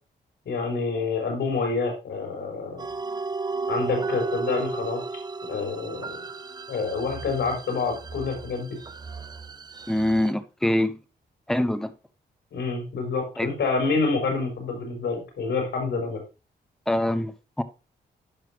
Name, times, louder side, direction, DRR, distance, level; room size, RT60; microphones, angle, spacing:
voice 1, 0.5-2.9 3.7-5.0 5.5-6.1 6.7-8.8 12.5-16.2, left 4 dB, 85° left, 4.4 m, -27 dB
sound 1, 2.8-10.3, right 4 dB, 25° right, 0.5 m, -34 dB
voice 2, 9.9-11.0 11.5-11.9 13.4-13.5 16.9-17.6, left 1 dB, 5° left, 0.9 m, -24 dB
11.0 x 5.8 x 2.9 m
cardioid pair, 95°, 18 cm